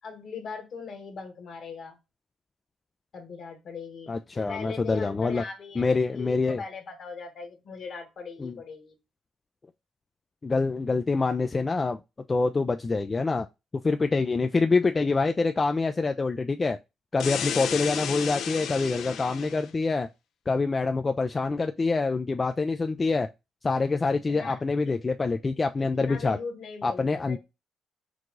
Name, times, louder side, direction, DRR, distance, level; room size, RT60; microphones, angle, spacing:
voice 1, 0.0-2.0 3.1-8.9 24.1-25.0 25.8-27.4, left 5 dB, 60° left, 1.6 m, -40 dB
voice 2, 4.1-5.4 5.8-6.6 8.4-8.6 10.4-12.0 12.3-13.5 13.8-16.8 17.1-20.1 20.5-23.3 23.6-26.4 26.8-27.4, left 3 dB, 30° left, 0.3 m, -26 dB
sound 1, 17.2-19.7, left 7 dB, 75° left, 0.6 m, -32 dB
4.7 x 2.3 x 3.8 m
cardioid pair, 90°, 0 cm